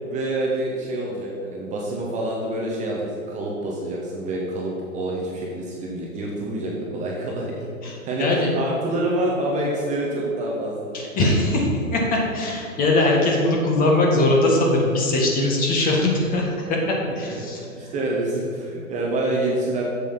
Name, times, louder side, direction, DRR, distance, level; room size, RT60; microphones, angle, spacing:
voice 1, 0.0-11.0 17.4-19.8, right 1 dB, 15° right, -2 dB, 1.1 m, -27 dB
voice 2, 7.8-8.6 10.9-17.6, left 2 dB, 20° left, -1 dB, 1.5 m, -21 dB
7.5 x 7.2 x 5.7 m, 2.7 s
hypercardioid pair, 125°, 42 cm